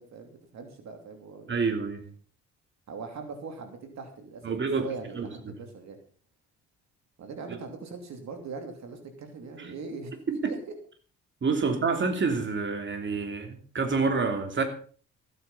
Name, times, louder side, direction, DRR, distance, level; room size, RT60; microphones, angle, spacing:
voice 1, 0.0-1.8 2.9-6.0 7.2-10.7 11.6-11.7, right 4 dB, 65° right, 5 dB, 2.9 m, -41 dB
voice 2, 1.5-2.0 4.4-4.9 5.1-5.6 9.6-9.7 10.4-10.5 11.4-14.6, right 4 dB, 40° right, 5 dB, 3.0 m, -28 dB
15.0 x 9.7 x 5.6 m, 0.43 s
cardioid pair, 90°, 30 cm